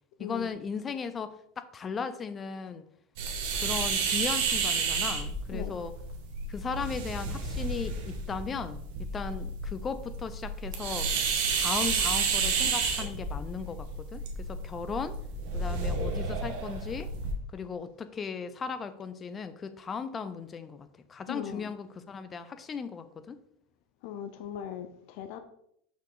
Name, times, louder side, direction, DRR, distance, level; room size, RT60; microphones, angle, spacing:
voice 1, 0.2-2.8 3.6-5.9 6.5-11.1 11.5-15.2 15.5-17.1 17.5-23.4, left 5 dB, 20° left, 0.6 m, -37 dB
sound 1, 3.2-17.3, right 4 dB, 65° right, 1.5 m, -31 dB
voice 2, 21.3-21.7 24.0-25.4, left 9 dB, 60° left, 0.8 m, -39 dB
6.6 x 5.9 x 3.9 m
supercardioid pair, 140°, 0 cm